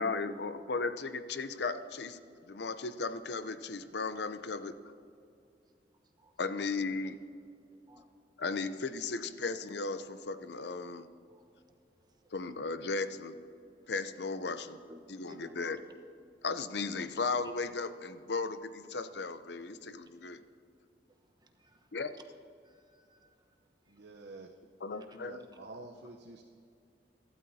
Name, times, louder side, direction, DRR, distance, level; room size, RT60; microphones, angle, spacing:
voice 1, 0.0-2.2 2.5-4.9 6.4-7.2 8.4-11.1 12.3-13.4 13.9-14.8 15.1-15.8 16.4-20.4 21.9-22.1 24.8-25.5, left 4 dB, 70° left, 11 dB, 0.7 m, -36 dB
voice 2, 11.3-12.5 13.8-13.9 14.9-15.7 21.1-22.0 22.6-24.1 24.9-25.1, right 1 dB, 25° right, 4 dB, 1.1 m, -59 dB
voice 3, 23.9-24.5 25.3-26.4, right 2 dB, 80° right, 1 dB, 0.9 m, -48 dB
23.5 x 12.5 x 2.8 m, 2.5 s
head